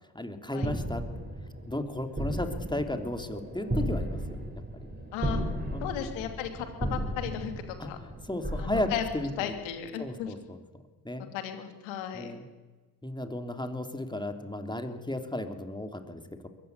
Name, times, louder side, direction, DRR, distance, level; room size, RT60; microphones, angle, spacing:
voice 1, 0.1-1.0 1.7-4.4 5.7-6.2 7.8-7.9 8.3-9.5 10.0-10.6 11.0-11.3 12.1-12.4 13.0-16.5, left 1 dB, 10° left, 6 dB, 3.2 m, -34 dB
sound 1, 0.6-9.9, right 1 dB, 20° right, 7.0 m, -35 dB
voice 2, 5.1-5.4 5.8-8.0 8.6-9.0 9.4-10.3 11.3-12.3, left 10 dB, 80° left, 7 dB, 3.0 m, -35 dB
22.5 x 15.5 x 9.5 m, 1.2 s
hypercardioid pair, 45°, 46 cm